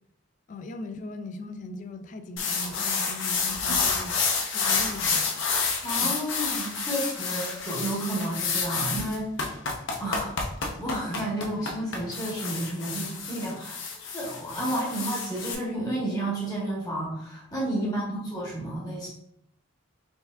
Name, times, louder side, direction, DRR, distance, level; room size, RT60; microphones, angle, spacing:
voice 1, 0.5-4.2 4.5-5.5 6.0-6.1 7.2-7.4 17.7-18.1, left 2 dB, 40° left, 8 dB, 0.3 m, -38 dB
sound 1, 2.4-15.5, left 5 dB, 70° left, 0.7 m, -29 dB
voice 2, 5.8-9.3 10.0-13.8 14.1-19.1, right 1 dB, 20° left, -4 dB, 0.9 m, -31 dB
4.2 x 3.5 x 2.3 m, 0.73 s
head